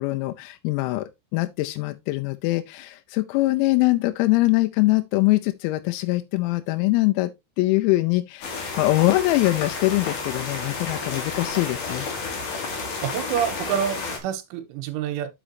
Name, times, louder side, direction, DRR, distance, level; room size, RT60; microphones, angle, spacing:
voice 1, 0.0-7.3 7.6-12.1, left 20 dB, 90° left, 3.4 m, -23 dB
sound 1, 8.4-14.2, left 4 dB, 50° left, 3.1 m, -31 dB
voice 2, 12.8-15.3, right 9 dB, 80° right, 3.2 m, -28 dB
10.0 x 6.3 x 2.8 m
omnidirectional pair, 6.0 m